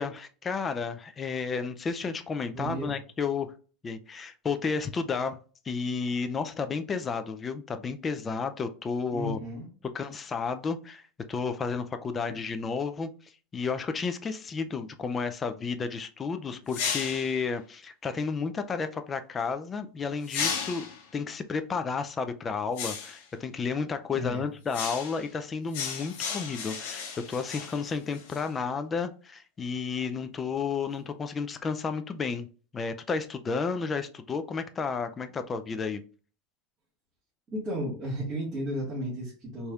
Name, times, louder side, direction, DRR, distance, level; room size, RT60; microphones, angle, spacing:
voice 1, 0.0-3.5 3.8-5.4 5.7-9.4 9.9-11.0 11.3-20.8 21.1-32.5 32.7-36.0, left 5 dB, 20° left, 8 dB, 0.3 m, -32 dB
voice 2, 2.5-3.0 9.1-9.7 24.1-24.4 37.5-39.7, equal, 20° right, -6 dB, 1.6 m, -34 dB
sound 1, 16.7-17.4 20.2-21.0 22.7-23.2 24.7-25.3 25.7-28.5, left 6 dB, 65° left, 1.0 m, -34 dB
4.1 x 3.4 x 2.4 m, 0.37 s
supercardioid pair, 145°, 0 cm